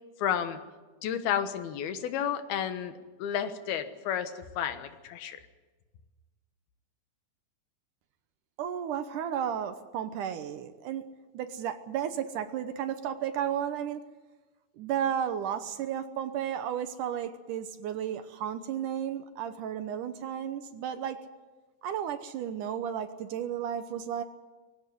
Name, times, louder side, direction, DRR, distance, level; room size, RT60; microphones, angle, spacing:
voice 1, 0.2-0.6 1.0-2.9 3.2-5.4, left 9 dB, 85° left, 9 dB, 3.2 m, -31 dB
voice 2, 8.6-11.0 11.3-14.0 14.8-21.2 21.8-24.2, right 9 dB, 70° right, 10 dB, 2.2 m, -33 dB
21.5 x 16.5 x 9.3 m, 1.3 s
omnidirectional pair, 4.3 m